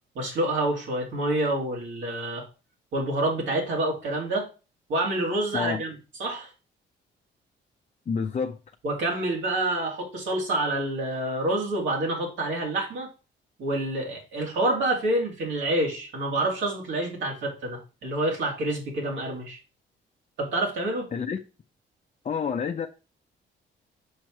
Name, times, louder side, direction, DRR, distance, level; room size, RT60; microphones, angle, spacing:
voice 1, 0.1-2.5 2.9-4.5 4.9-5.9 6.2-6.5 8.8-13.1 13.6-19.6 20.4-21.1, right 1 dB, 75° right, 2.5 m, -27 dB
voice 2, 8.1-8.6 21.1-21.4 22.2-22.9, left 6 dB, 35° left, 0.6 m, -28 dB
6.4 x 4.7 x 4.5 m
cardioid pair, 90°, 20 cm